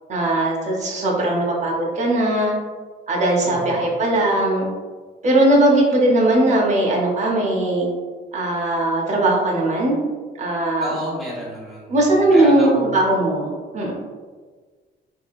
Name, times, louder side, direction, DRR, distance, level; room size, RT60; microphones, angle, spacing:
voice 1, 0.1-2.6 3.1-4.7 5.2-7.9 8.3-10.0 10.4-10.9 11.9-13.9, right 1 dB, 35° right, -2 dB, 0.7 m, -19 dB
voice 2, 3.4-3.9 10.8-12.9, right 1 dB, ahead, -7 dB, 1.4 m, -31 dB
2.7 x 2.7 x 2.4 m, 1.4 s
cardioid pair, 90°, 20 cm